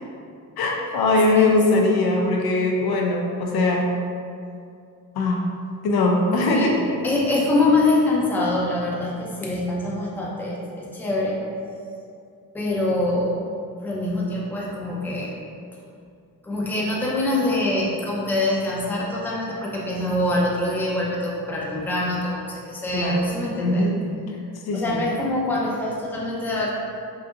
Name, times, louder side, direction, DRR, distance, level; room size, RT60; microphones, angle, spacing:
voice 1, 0.6-3.9 5.1-5.4 5.8-6.8 22.9-23.2 23.6-24.0 24.7-25.0, left 2 dB, 70° left, 0 dB, 0.6 m, -21 dB
voice 2, 7.0-11.4 12.5-13.3 13.8-15.3 16.4-23.9 24.7-26.7, left 2 dB, 5° left, -5 dB, 0.6 m, -24 dB
3.8 x 2.7 x 2.4 m, 2.4 s
cardioid pair, 80°, 39 cm